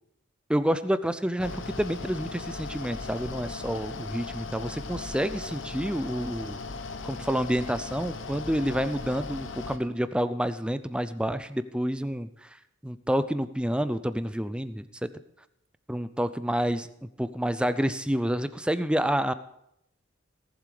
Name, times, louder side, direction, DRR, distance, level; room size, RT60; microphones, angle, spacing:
voice 1, 0.5-6.6 7.0-12.5 12.8-14.9 15.9-19.3, equal, 5° right, 12 dB, 0.5 m, -28 dB
Mechanical fan, 1.4-9.8, left 3 dB, 65° left, 1.0 m, -38 dB
18.0 x 7.7 x 4.9 m, 0.78 s
head